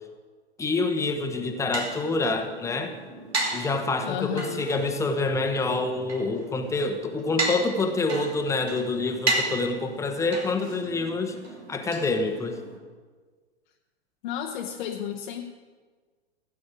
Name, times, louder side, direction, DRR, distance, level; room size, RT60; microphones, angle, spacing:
voice 1, 0.6-3.0 3.5-11.4 11.7-12.6, left 3 dB, 10° left, 5 dB, 1.0 m, -27 dB
sound 1, 1.1-12.8, right 2 dB, 75° right, 2.6 m, -34 dB
voice 2, 4.0-4.7 14.2-15.4, left 9 dB, 45° left, 1 dB, 1.0 m, -32 dB
16.5 x 8.5 x 5.0 m, 1.5 s
figure-of-eight pair, 105°, 33 cm